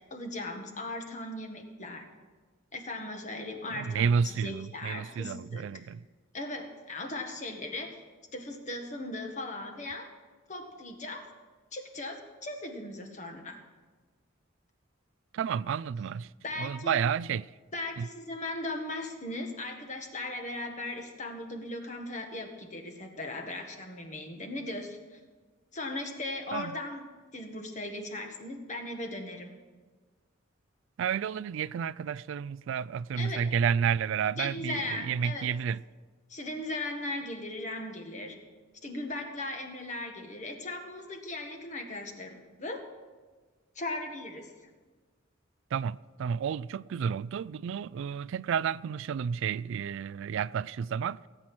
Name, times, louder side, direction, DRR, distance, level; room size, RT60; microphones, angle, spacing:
voice 1, 0.1-2.0 2.7-5.6 6.3-8.0 8.3-10.1 10.5-11.3 11.7-13.6 16.4-17.0 17.7-25.2 25.7-27.1 27.3-29.5 33.2-33.4 34.3-35.5 36.3-38.4 38.8-42.8 43.8-44.5, left 2 dB, 40° left, 1.7 m, -38 dB
voice 2, 3.7-6.0 15.3-16.3 16.6-17.5 18.0-18.1 26.5-26.7 31.0-35.8 45.7-51.2, right 7 dB, 70° right, 0.3 m, -31 dB
17.0 x 8.8 x 6.2 m
head